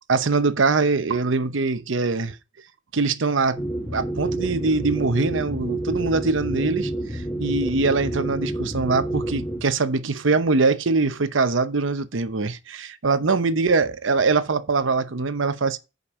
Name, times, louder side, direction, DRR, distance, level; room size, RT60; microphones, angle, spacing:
voice 1, 0.1-2.4 2.9-3.6 3.9-15.8, right 4 dB, 75° right, 0.8 m, -23 dB
sound 1, 3.6-9.6, right 1 dB, 15° left, 1.8 m, -29 dB
7.2 x 5.3 x 6.3 m
head